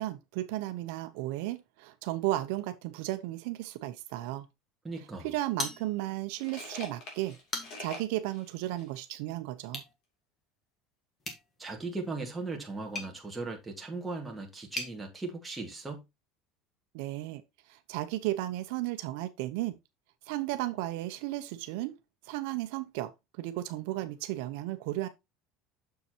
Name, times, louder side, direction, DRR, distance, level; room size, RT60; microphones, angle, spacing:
voice 1, 0.0-4.5 5.2-7.4 7.8-9.8 16.9-17.4 17.7-19.8 20.3-21.9 22.2-25.1, right 16 dB, 70° right, 0.7 m, -34 dB
voice 2, 4.8-5.3 11.6-16.0, right 3 dB, 5° right, 1.5 m, -38 dB
sound 1, 5.0-5.1 5.8-9.0, left 2 dB, 45° left, 2.8 m, -46 dB
sound 2, 5.6-6.3 6.7-6.8 7.3-8.0 9.6-9.9 11.2-15.0, left 2 dB, 20° left, 1.5 m, -41 dB
6.9 x 6.6 x 2.9 m
cardioid pair, 175°, 0 cm